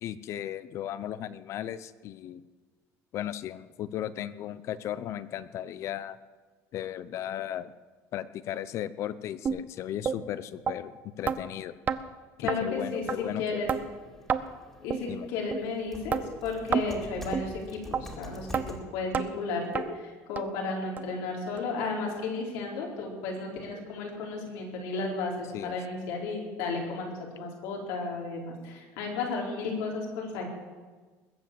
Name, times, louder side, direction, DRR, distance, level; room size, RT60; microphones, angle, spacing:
voice 1, 0.0-2.4 3.1-6.2 6.7-7.7 8.1-11.7 12.4-13.6 15.1-15.3 25.5-25.8, left 11 dB, 50° left, 16 dB, 0.7 m, -36 dB
sound 1, 9.5-9.6 10.1-10.2 10.7-10.8 11.3-11.4 11.9-12.0 12.5-12.6 13.1-13.2 13.7-13.8 14.3-14.4 14.9-15.0 15.5-15.6 16.1-16.2 16.7-16.9 17.3-17.5 17.9-18.0 18.5-18.7 19.1-19.3 19.8-19.9 20.4-20.5 21.0-21.1 21.6-21.7 22.2-22.3, right 7 dB, 25° right, 0.6 m, -28 dB
voice 2, 12.4-13.7 14.8-30.5, left 3 dB, 85° left, -1 dB, 4.3 m, -33 dB
sound 2, 12.7-18.8, equal, 5° left, 2.3 m, -47 dB
21.0 x 7.7 x 7.6 m, 1.4 s
cardioid pair, 155°, 6 cm